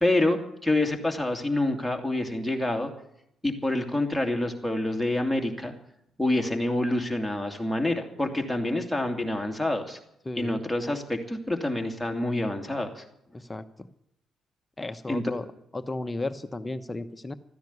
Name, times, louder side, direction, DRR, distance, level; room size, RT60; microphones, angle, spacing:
voice 1, 0.0-2.9 3.4-5.7 6.2-10.0 10.4-13.0 15.1-15.2, left 1 dB, ahead, 6 dB, 2.5 m, -27 dB
voice 2, 10.2-10.6 13.3-13.9 14.8-15.5 15.7-17.3, left 2 dB, 15° left, 10 dB, 0.9 m, -34 dB
13.5 x 10.0 x 9.7 m, 0.75 s
cardioid pair, 90°, 0 cm